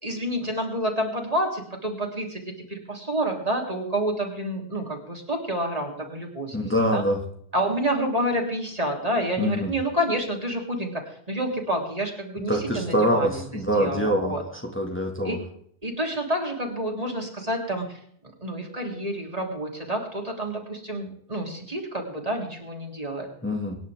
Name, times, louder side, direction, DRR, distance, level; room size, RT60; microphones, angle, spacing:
voice 1, 0.0-7.0 7.5-13.4 13.7-14.4 15.2-15.4 15.8-23.3, right 1 dB, 35° right, 1 dB, 3.4 m, -29 dB
voice 2, 6.5-7.2 9.4-9.7 12.5-15.4 23.4-23.8, equal, 10° left, 1 dB, 2.0 m, -25 dB
25.0 x 10.5 x 3.6 m, 0.65 s
omnidirectional pair, 1.1 m